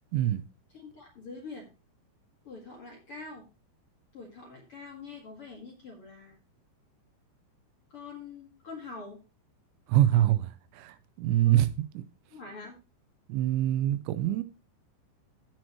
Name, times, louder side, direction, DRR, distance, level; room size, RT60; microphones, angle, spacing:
voice 1, 0.1-0.4 9.9-11.7 12.0-12.1 13.3-14.4, right 13 dB, 85° right, 3.0 m, -25 dB
voice 2, 0.7-1.7 2.4-3.5 4.1-6.4 7.9-9.2 11.4-11.6 12.3-12.7, left 4 dB, 45° left, 1.9 m, -45 dB
16.5 x 6.2 x 3.0 m
omnidirectional pair, 5.1 m